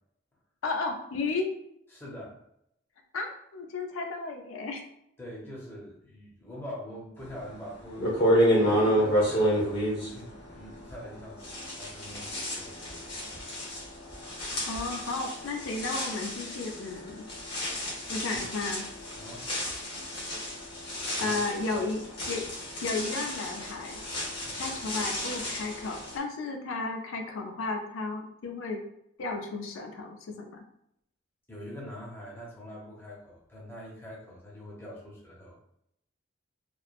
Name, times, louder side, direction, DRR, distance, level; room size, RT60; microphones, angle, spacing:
voice 1, 0.6-1.5 3.1-4.8 14.6-17.3 18.1-18.8 21.2-22.0 22.3-22.5 22.8-24.0 24.6-28.8 29.2-30.6, left 3 dB, 85° left, 3 dB, 0.4 m, -33 dB
voice 2, 1.9-2.4 5.2-13.0 18.3-18.4 19.1-19.5 21.2-21.4 21.7-21.9 24.4-24.8 31.5-35.6, equal, 10° left, -5 dB, 0.6 m, -44 dB
sound 1, 7.4-7.5 8.0-11.1 11.4-26.2, equal, 55° left, 1.0 m, -30 dB
3.0 x 2.0 x 2.4 m, 0.74 s
head